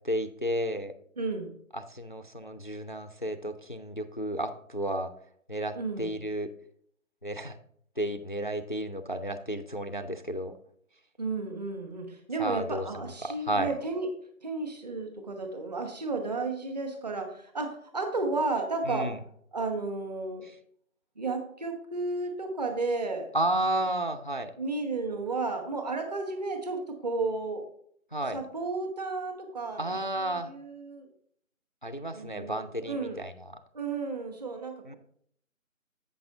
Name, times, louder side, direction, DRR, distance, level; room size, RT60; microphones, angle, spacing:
voice 1, 0.0-0.9 1.7-5.1 5.5-6.5 7.2-7.6 8.0-10.5 12.4-12.8 13.2-13.7 18.8-19.2 23.3-24.5 28.1-28.4 29.8-30.5 31.8-33.6 34.9-35.0, right 1 dB, 40° left, 8 dB, 0.4 m, -32 dB
voice 2, 1.2-1.6 5.7-6.2 11.2-14.1 14.4-19.2 19.5-20.5 21.2-23.3 24.6-27.7 28.3-29.8 30.2-31.1 32.1-33.2 33.7-34.9, right 3 dB, 30° right, 5 dB, 1.1 m, -33 dB
8.5 x 6.0 x 3.6 m, 0.65 s
figure-of-eight pair, 155°, 41 cm